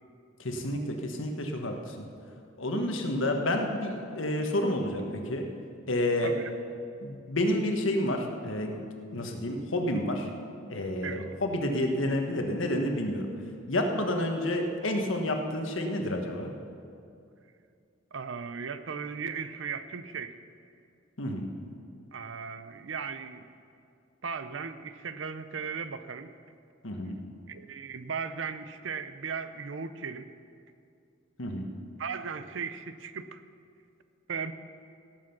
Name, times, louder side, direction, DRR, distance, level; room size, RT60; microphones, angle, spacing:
voice 1, 0.4-2.0 2.6-5.4 5.9-6.3 7.0-8.8 9.1-10.3 10.7-13.3 13.7-16.5 21.2-21.5 26.8-27.2 31.4-31.6, left 1 dB, 80° left, 3 dB, 1.4 m, -29 dB
voice 2, 18.1-20.4 22.1-23.5 24.2-26.3 27.5-30.3 32.0-33.4 34.3-34.5, right 6 dB, 70° right, 11 dB, 0.6 m, -37 dB
17.0 x 7.6 x 5.9 m, 2.4 s
head